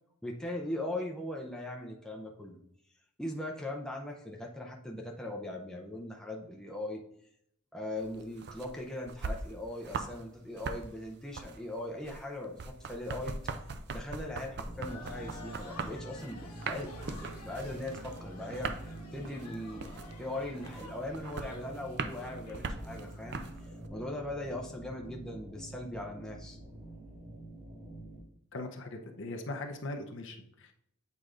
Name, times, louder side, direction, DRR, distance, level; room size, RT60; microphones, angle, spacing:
voice 1, 0.2-2.6 3.2-7.0 7.7-13.5 13.9-18.7 19.1-19.8 20.2-26.6, left 1 dB, 5° left, -1 dB, 0.5 m, -40 dB
sound 1, 8.0-10.2 10.5-23.9, right 4 dB, 50° right, 0.4 m, -40 dB
sound 2, 14.6-28.2, right 1 dB, 30° right, 1.3 m, -47 dB
sound 3, 14.8-23.6, left 2 dB, 85° left, 1.3 m, -51 dB
voice 2, 28.5-30.7, left 2 dB, 55° left, 4 dB, 0.7 m, -40 dB
8.3 x 4.6 x 2.5 m, 0.73 s
head